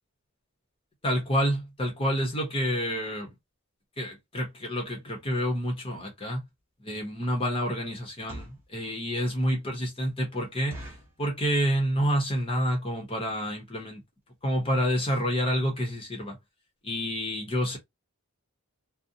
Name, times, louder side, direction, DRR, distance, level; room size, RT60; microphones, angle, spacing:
voice 1, 1.0-3.3 4.0-6.4 6.8-10.9 11.2-14.0 14.4-16.4 16.8-17.8, equal, 25° left, 0.7 m, -28 dB
sound 1, 6.5-6.6 7.1-7.3 8.0-8.7 9.2-9.3 9.7-9.8 10.1-10.2 10.7-11.2 11.8-12.1 12.3-12.4 12.7-12.9 13.5-13.6 13.8-14.0 14.3-14.4 14.6-14.7, right 1 dB, 10° right, 1.0 m, -44 dB
2.5 x 2.1 x 2.6 m
head